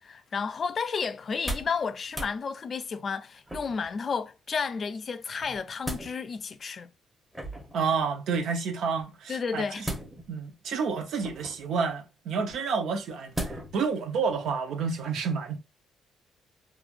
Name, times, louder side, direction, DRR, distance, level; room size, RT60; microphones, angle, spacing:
voice 1, 0.0-6.9 9.3-9.9, left 5 dB, 45° left, 0.4 m, -32 dB
sound 1, 1.2-1.8 2.1-2.4 3.5-3.9 5.4-6.1 7.3-7.8 9.8-10.4 11.2-11.7 13.3-13.8 14.3-14.4, right 1 dB, 5° right, 0.9 m, -36 dB
voice 2, 7.7-9.9 10.3-15.6, right 5 dB, 75° right, 0.6 m, -29 dB
3.1 x 2.3 x 2.4 m
cardioid pair, 90°, 0 cm